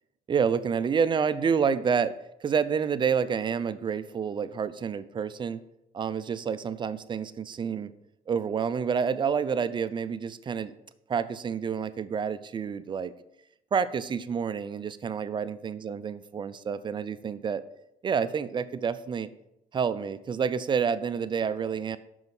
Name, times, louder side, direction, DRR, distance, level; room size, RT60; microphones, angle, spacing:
voice 1, 0.3-2.1 2.4-5.6 5.9-7.9 8.3-10.7 11.1-13.1 13.7-17.6 18.0-19.3 19.7-22.0, right 6 dB, 30° right, 14 dB, 0.4 m, -28 dB
6.2 x 5.3 x 5.3 m, 0.85 s
cardioid pair, 110°, 17 cm